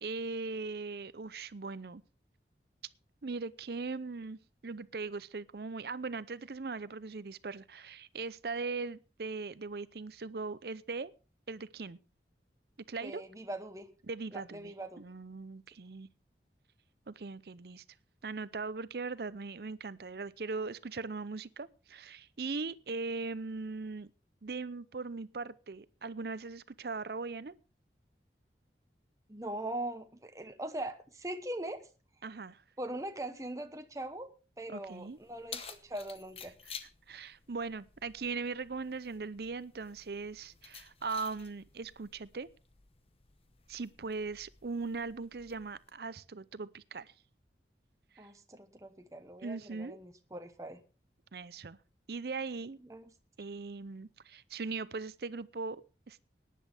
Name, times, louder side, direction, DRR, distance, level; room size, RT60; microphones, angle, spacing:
voice 1, 0.0-2.0 3.2-11.1 11.5-12.0 12.9-13.2 14.1-16.1 17.1-17.8 18.2-24.1 24.4-27.5 32.2-32.6 34.7-35.2 37.1-42.5 43.7-47.1 48.2-48.3 49.4-50.0 51.3-51.8 52.1-52.8 53.4-56.2, right 4 dB, 60° right, 0.6 m, -39 dB
voice 2, 13.0-13.9 14.3-15.0 29.3-31.9 32.8-34.3 34.6-36.5 48.2-50.8 52.8-53.1, right 1 dB, 20° right, 1.0 m, -41 dB
Keys jangling, 34.9-45.9, left 6 dB, 35° left, 1.0 m, -52 dB
18.0 x 10.5 x 3.4 m
head